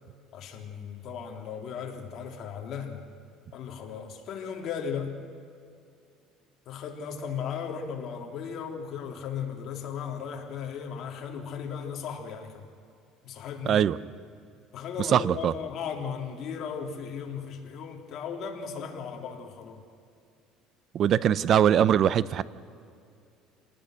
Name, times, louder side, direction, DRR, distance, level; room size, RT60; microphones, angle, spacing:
voice 1, 0.3-3.1 3.5-5.1 6.6-12.7 13.2-13.8 14.7-19.8, left 7 dB, 50° left, 2 dB, 3.4 m, -36 dB
voice 2, 13.7-14.0 15.1-15.5 20.9-22.4, right 9 dB, 45° right, 18 dB, 0.7 m, -22 dB
28.0 x 19.0 x 6.5 m, 2.4 s
cardioid pair, 130°, 0 cm